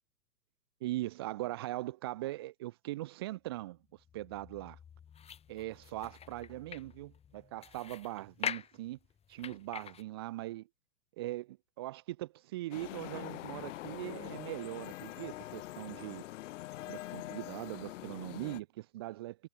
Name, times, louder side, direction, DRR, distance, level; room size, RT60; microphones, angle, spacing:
voice 1, 0.8-3.8 4.1-4.7 5.5-9.0 9.3-10.7 11.2-16.2 16.9-19.4, right 16 dB, 15° right, 0.4 m, -40 dB
sound 1, 3.5-10.0, left 8 dB, 10° left, 1.6 m, -45 dB
sound 2, 12.7-18.6, left 15 dB, 45° left, 2.5 m, -44 dB
hypercardioid pair, 130°, 49 cm